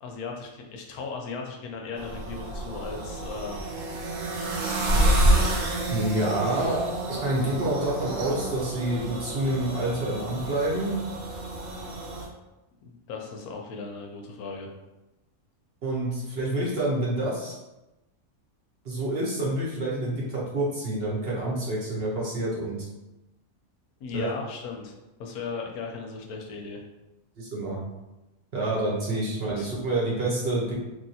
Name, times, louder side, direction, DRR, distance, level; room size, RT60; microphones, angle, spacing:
voice 1, 0.0-3.9 4.9-5.6 12.8-14.7 24.0-24.9 25.2-26.8 29.5-29.8, left 4 dB, 85° left, 2 dB, 1.1 m, -37 dB
sound 1, 2.0-12.3, right 1 dB, 75° right, 1.1 m, -28 dB
voice 2, 5.9-6.8 7.1-10.9 15.8-17.6 18.8-22.8 24.1-24.3 27.4-27.8 28.5-30.7, right 1 dB, 50° right, -5 dB, 0.9 m, -28 dB
3.0 x 2.7 x 2.7 m, 1.0 s
omnidirectional pair, 1.5 m